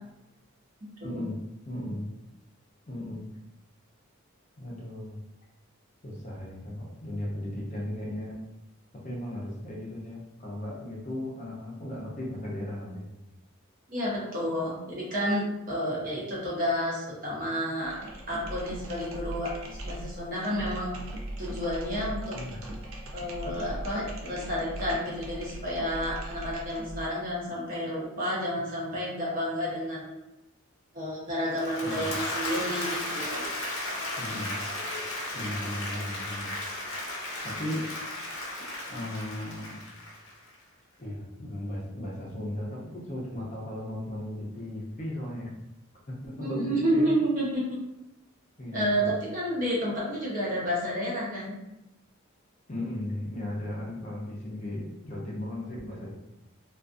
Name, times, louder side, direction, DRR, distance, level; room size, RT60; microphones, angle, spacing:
voice 1, 1.0-2.1 2.9-3.3 4.6-5.2 6.0-8.4 8.9-13.1 22.3-22.6 31.8-32.1 34.2-34.6 35.3-36.5 37.4-37.9 38.9-39.8 41.0-45.5 46.1-47.1 48.6-49.2 52.7-56.1, left 1 dB, 35° left, -4 dB, 0.6 m, -36 dB
voice 2, 13.9-18.0 18.3-19.5 19.8-21.0 21.4-22.4 23.1-30.1 30.9-33.4 46.4-47.8 48.7-51.6, equal, 40° right, -5 dB, 0.8 m, -30 dB
sound 1, 17.8-27.1, right 1 dB, 70° right, 0.5 m, -39 dB
Applause / Crowd, 31.4-40.6, left 1 dB, 80° left, 0.7 m, -35 dB
2.4 x 2.3 x 2.5 m, 0.91 s
head